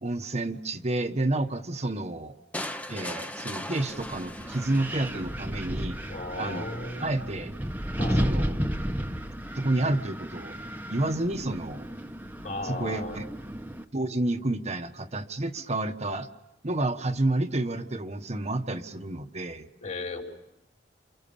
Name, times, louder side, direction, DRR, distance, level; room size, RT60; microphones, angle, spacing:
voice 1, 0.0-2.3 2.9-6.0 6.4-6.7 7.0-7.5 8.1-8.6 9.5-10.6 10.9-11.8 12.6-13.2 13.9-16.3 16.6-19.7, right 2 dB, 40° right, 4 dB, 1.2 m, -30 dB
sound 1, 2.5-5.5, left 1 dB, 10° left, 0.9 m, -38 dB
Wind, 3.9-13.8, equal, 10° right, 1.1 m, -33 dB
voice 2, 6.1-7.3 8.0-8.2 12.4-13.2 19.8-20.2, left 2 dB, 45° left, 1 dB, 5.1 m, -35 dB
29.0 x 29.0 x 7.1 m, 0.86 s
head